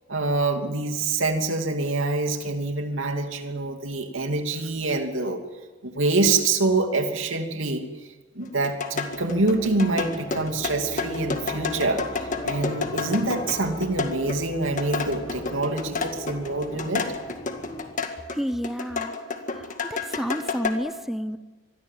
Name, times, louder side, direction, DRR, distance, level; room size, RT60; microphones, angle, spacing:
voice 1, 0.1-5.4 5.8-7.8 8.3-12.0 12.4-17.1, right 3 dB, 80° right, 5 dB, 2.8 m, -25 dB
sound 1, 8.4-18.4 18.6-20.7, left 4 dB, 40° left, 2.0 m, -30 dB
sound 2, 9.0-18.3, left 1 dB, 20° left, 1.4 m, -39 dB
voice 2, 18.3-19.1 19.5-21.4, equal, ahead, 12 dB, 0.9 m, -30 dB
26.0 x 21.5 x 7.6 m, 1.3 s
head